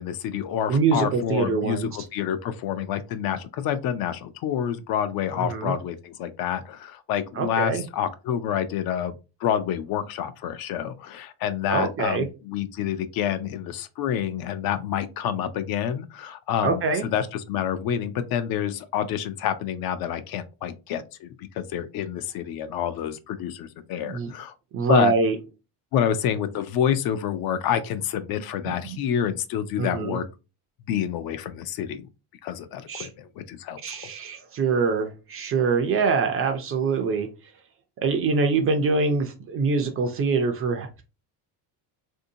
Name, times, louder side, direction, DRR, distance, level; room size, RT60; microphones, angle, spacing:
voice 1, 0.0-9.1 9.4-24.5 24.9-25.1 25.9-30.2 30.9-32.1 32.4-33.8, left 9 dB, 55° left, 0.5 m, -28 dB
voice 2, 0.7-1.9 5.4-5.7 7.4-7.8 11.7-12.3 16.6-17.0 24.0-24.3 24.7-25.4 28.7-29.0 29.8-30.2 32.9-33.1 33.8-37.3 38.0-41.0, right 4 dB, 35° right, 0.4 m, -24 dB
3.5 x 2.7 x 2.6 m
cardioid pair, 160°, 44 cm